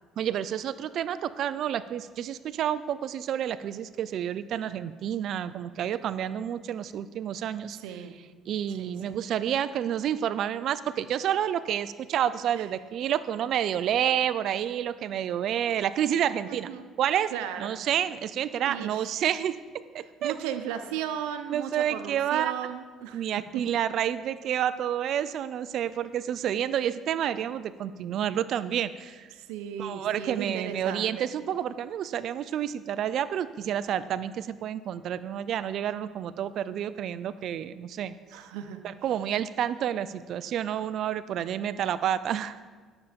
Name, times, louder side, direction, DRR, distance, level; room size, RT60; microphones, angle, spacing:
voice 1, 0.2-7.8 8.5-16.7 17.0-17.3 17.6-19.6 19.9-20.4 21.5-22.5 23.1-29.3 29.8-38.1 38.8-42.6, right 10 dB, 65° right, 15 dB, 0.4 m, -29 dB
voice 2, 7.7-8.2 8.8-9.2 12.5-12.7 16.5-16.8 17.3-17.7 18.6-19.2 20.2-23.2 23.5-23.8 29.4-31.3 38.3-38.8, right 9 dB, 90° right, 8 dB, 0.8 m, -36 dB
12.0 x 7.0 x 5.2 m, 1.5 s
supercardioid pair, 80°, 0 cm